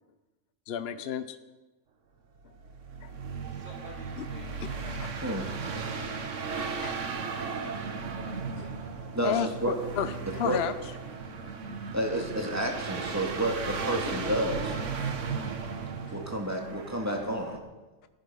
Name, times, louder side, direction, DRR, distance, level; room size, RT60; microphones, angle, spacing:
voice 1, 0.7-1.4 3.0-3.1 4.2-4.3 4.6-4.7 6.6-7.0 8.6-8.8 9.2-9.5 10.0-10.7 14.0-14.3, left 9 dB, 55° left, 11 dB, 0.8 m, -32 dB
sound 1, 2.4-17.6, right 5 dB, 65° right, 1.5 m, -36 dB
voice 2, 3.4-6.0 6.7-8.0, equal, 40° right, -2 dB, 4.2 m, -50 dB
voice 3, 9.1-9.8 10.4-10.6 11.9-14.7 16.1-17.6, right 1 dB, 10° right, 1 dB, 1.9 m, -30 dB
14.5 x 13.5 x 5.5 m, 1.2 s
omnidirectional pair, 1.4 m